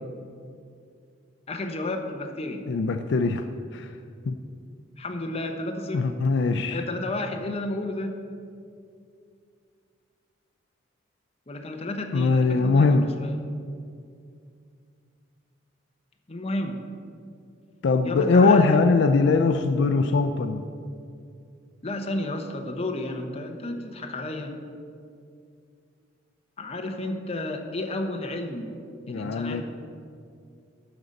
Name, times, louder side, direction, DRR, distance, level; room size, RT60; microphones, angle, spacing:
voice 1, 1.5-2.7 5.0-6.1 6.7-8.2 11.5-13.4 16.3-16.8 18.0-18.8 21.8-24.6 26.6-28.8 29.1-29.6, left 1 dB, 30° left, 4 dB, 0.8 m, -32 dB
voice 2, 2.7-3.5 3.7-3.9 4.3-4.4 5.9-6.8 12.1-13.1 17.8-20.6 29.1-29.6, left 4 dB, 65° left, 7 dB, 0.4 m, -21 dB
11.5 x 4.0 x 7.5 m, 2.4 s
head